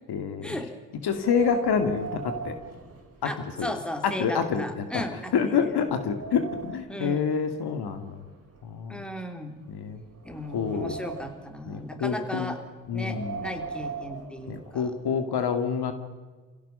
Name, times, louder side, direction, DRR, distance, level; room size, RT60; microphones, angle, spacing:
voice 1, 0.1-0.6 1.0-2.6 3.2-3.7 4.0-5.0 5.3-8.2 8.6-9.0 9.7-10.0 10.5-11.0 11.7-12.6 12.9-13.5 14.5-15.9, left 6 dB, 55° left, 8 dB, 2.4 m, -27 dB
Wind, 1.0-3.7 4.0-4.1 4.8-4.9 5.4-7.0 7.9-9.4 9.9-11.6 12.8-14.9, right 5 dB, 30° right, 5.2 m, -40 dB
voice 2, 3.2-5.7 6.9-7.3 8.9-9.6 10.2-12.6 12.9-14.9, equal, ahead, 5 dB, 3.5 m, -36 dB
28.0 x 16.5 x 5.6 m, 1.4 s
hypercardioid pair, 55°, 47 cm